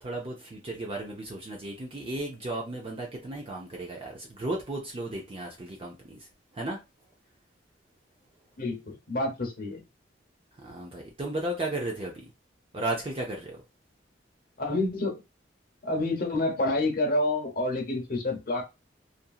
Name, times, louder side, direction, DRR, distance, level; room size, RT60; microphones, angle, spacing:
voice 1, 0.0-6.2 6.5-6.8 10.6-12.3 12.7-13.6, right 2 dB, 30° right, 0.5 m, -34 dB
voice 2, 8.6-9.8 14.6-15.2 15.8-18.6, left 2 dB, 50° left, 0.8 m, -28 dB
2.8 x 2.6 x 2.4 m
head